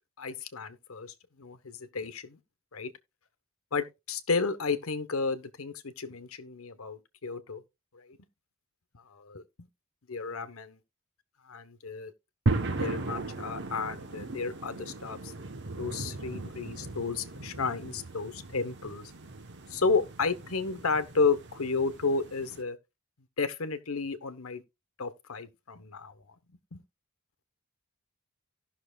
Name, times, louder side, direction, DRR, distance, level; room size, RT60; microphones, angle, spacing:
voice 1, 0.2-2.4 2.7-2.9 3.7-7.6 7.9-8.2 8.9-9.7 10.1-10.8 11.4-12.1 12.8-15.3 15.8-19.1 19.7-22.8 23.4-24.6 25.0-26.3 26.7-26.8, left 4 dB, 70° left, 1.1 m, -32 dB
sound 1, 12.5-22.6, right 2 dB, 55° right, 1.1 m, -37 dB
17.5 x 6.1 x 2.4 m
head